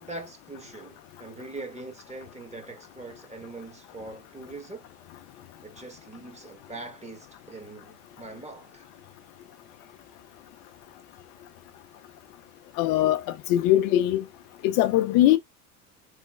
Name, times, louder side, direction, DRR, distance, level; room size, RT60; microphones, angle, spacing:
voice 1, 0.0-4.8 5.6-8.9, right 2 dB, 15° right, 1.2 m, -42 dB
voice 2, 12.8-13.2 13.5-14.2 14.6-15.4, left 13 dB, 55° left, 0.5 m, -21 dB
3.7 x 3.1 x 2.3 m
hypercardioid pair, 70°, 44 cm